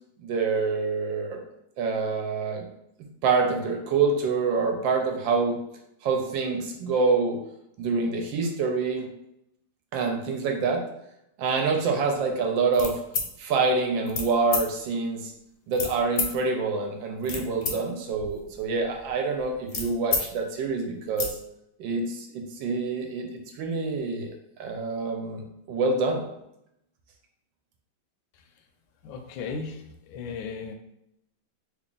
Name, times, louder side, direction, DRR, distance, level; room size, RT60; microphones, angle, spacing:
voice 1, 0.2-1.4 1.8-2.7 3.2-5.6 6.0-7.4 7.8-9.1 9.9-10.8 11.4-13.0 13.4-15.3 15.7-21.3 21.8-24.3 24.6-26.2, right 4 dB, 75° right, 2 dB, 1.3 m, -26 dB
sound 1, 12.7-13.3 14.1-14.3 14.5-14.6 15.7-16.3 17.0-17.7 18.1-20.2 20.6-20.7 21.0-21.3, left 4 dB, 65° left, 0.9 m, -30 dB
voice 2, 29.0-30.7, left 5 dB, 85° left, 5 dB, 1.4 m, -36 dB
3.4 x 2.4 x 3.8 m, 0.80 s
omnidirectional pair, 2.2 m